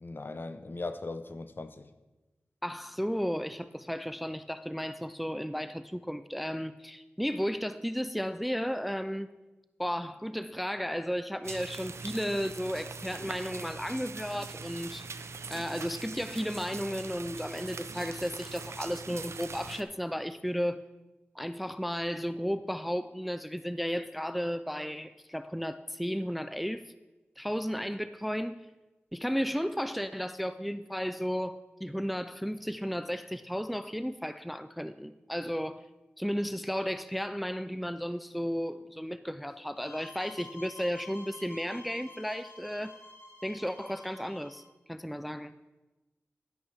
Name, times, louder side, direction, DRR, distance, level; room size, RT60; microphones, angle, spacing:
voice 1, 0.0-1.9, left 3 dB, 50° left, 0.7 m, -39 dB
voice 2, 2.6-9.3 9.8-15.2 15.5-20.8 21.3-26.9 27.4-28.6 29.1-35.8 36.2-42.9 43.4-44.6 44.9-45.5, equal, ahead, 0.3 m, -34 dB
sound 1, 11.4-19.8, right 4 dB, 80° right, 0.5 m, -42 dB
sound 2, 39.8-44.7, left 2 dB, 75° left, 2.1 m, -50 dB
12.0 x 10.0 x 3.4 m
wide cardioid pair, 65°, 5 cm